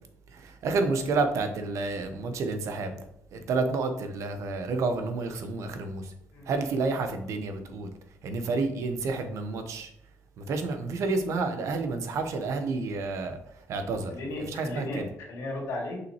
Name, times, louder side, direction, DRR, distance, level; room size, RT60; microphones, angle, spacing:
voice 1, 0.3-2.9 3.3-6.1 6.5-7.9 8.2-9.9 10.4-13.4 13.7-14.1 14.5-15.1, right 3 dB, 70° right, 7 dB, 0.9 m, -29 dB
voice 2, 14.1-16.0, left 2 dB, 85° left, -4 dB, 2.5 m, -35 dB
6.2 x 5.4 x 3.0 m, 0.74 s
cardioid pair, 110°, 5 cm